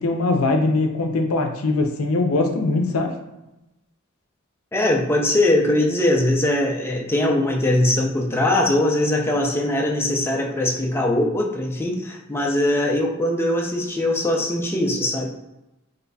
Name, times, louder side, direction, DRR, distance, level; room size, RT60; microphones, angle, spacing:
voice 1, 0.0-3.1, left 2 dB, 85° left, 4 dB, 0.5 m, -21 dB
voice 2, 4.7-15.3, left 1 dB, 10° left, -1 dB, 0.4 m, -21 dB
3.9 x 3.1 x 2.2 m, 0.94 s
head